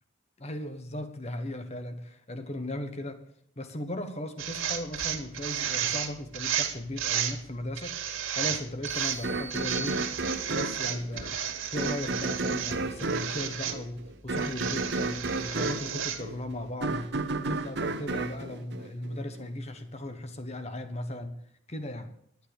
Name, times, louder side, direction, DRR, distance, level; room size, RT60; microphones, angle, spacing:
voice 1, 0.4-3.2 3.6-8.0 8.3-11.4 11.7-21.4 21.7-22.1, left 1 dB, 30° left, 1.2 m, -37 dB
sound 1, 4.4-7.4 7.7-9.2 9.5-12.7 13.0-13.7 14.4-16.2, right 9 dB, 70° right, 2.1 m, -33 dB
sound 2, 8.9-10.7, right 3 dB, 15° right, 0.7 m, -42 dB
sound 3, 9.2-19.5, right 3 dB, 55° right, 0.9 m, -32 dB
11.0 x 9.6 x 6.7 m
head